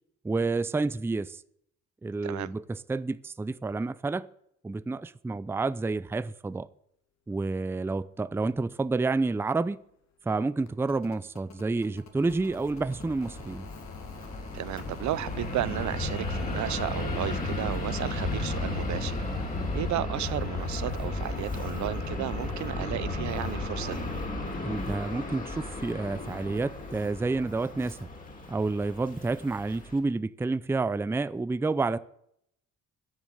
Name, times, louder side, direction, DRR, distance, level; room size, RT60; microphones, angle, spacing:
voice 1, 0.2-1.4 2.0-4.3 4.6-6.7 7.3-9.8 10.2-13.7 24.6-28.0 28.5-32.0, right 3 dB, 10° right, 0.4 m, -29 dB
sound 1, 8.7-8.8 9.1-20.0 21.4-21.5, left 5 dB, 65° left, 2.3 m, -50 dB
Fixed-wing aircraft airplane, 12.2-30.0, left 2 dB, 30° left, 3.1 m, -34 dB
voice 2, 14.5-19.2 19.7-24.1, right 14 dB, 70° right, 0.6 m, -33 dB
10.5 x 7.0 x 9.0 m
cardioid pair, 90°, 30 cm